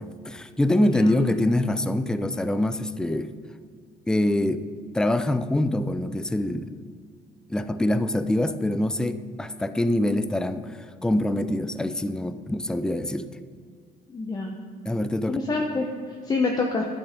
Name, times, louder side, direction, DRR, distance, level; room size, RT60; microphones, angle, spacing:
voice 1, 0.0-3.3 4.1-4.6 4.9-6.7 7.5-10.7 11.0-13.3 14.9-15.4, left 1 dB, 5° left, 11 dB, 0.4 m, -24 dB
voice 2, 0.8-1.2 14.1-14.6 15.3-16.9, left 3 dB, 25° left, 1 dB, 0.8 m, -27 dB
11.5 x 6.1 x 5.2 m, 2.1 s
cardioid pair, 110°, 17 cm